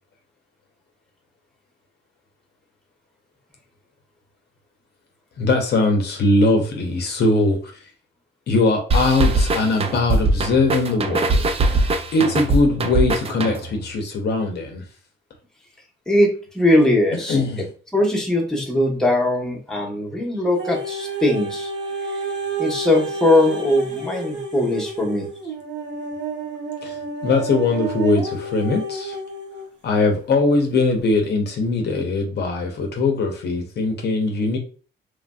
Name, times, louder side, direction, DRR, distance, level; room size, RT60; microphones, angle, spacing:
voice 1, 5.4-7.6 8.5-14.8 17.1-17.6 26.8-29.2 29.8-34.6, left 3 dB, 55° left, 3 dB, 0.7 m, -21 dB
sound 1, 8.9-13.9, right 2 dB, 30° right, 0.4 m, -21 dB
voice 2, 16.1-17.4 17.9-21.7 22.1-22.2 22.6-25.3, left 1 dB, 5° left, -2 dB, 1.0 m, -20 dB
sound 2, 20.6-29.7 30.3-30.4, right 3 dB, 65° right, 1.0 m, -30 dB
3.1 x 2.5 x 2.2 m, 0.38 s
cardioid pair, 90°, 20 cm